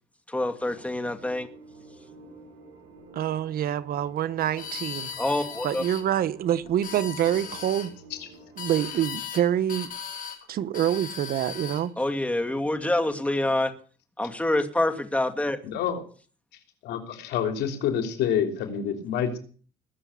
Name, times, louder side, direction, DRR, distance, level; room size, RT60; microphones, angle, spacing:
voice 1, 0.3-1.5 5.2-5.8 12.0-13.7 14.2-15.6, left 1 dB, 10° left, 7 dB, 2.2 m, -26 dB
sound 1, 0.6-9.0, right 3 dB, 80° right, 6.4 m, -51 dB
voice 2, 3.1-5.1 5.6-7.9 8.6-9.9 10.5-11.9, right 11 dB, 60° right, 14 dB, 1.1 m, -26 dB
sound 2, 4.6-6.0 6.7-7.9 8.6-9.4 9.7-10.4 10.7-11.8, left 7 dB, 50° left, 3.5 m, -37 dB
voice 3, 15.6-16.0 16.5-19.4, left 8 dB, 80° left, 5 dB, 3.3 m, -28 dB
20.5 x 7.0 x 8.3 m, 0.42 s
cardioid pair, 110°, 17 cm